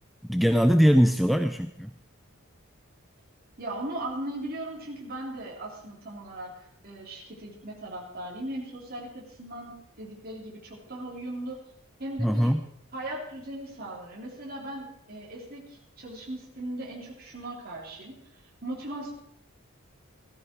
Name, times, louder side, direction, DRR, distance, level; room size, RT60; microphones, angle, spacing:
voice 1, 0.2-1.9 12.2-12.6, equal, ahead, 7 dB, 0.4 m, -21 dB
voice 2, 3.6-6.5 6.8-11.6 12.0-12.5 12.9-18.2 18.6-19.1, right 1 dB, 45° right, -3 dB, 3.5 m, -38 dB
15.5 x 13.5 x 4.6 m, 0.74 s
head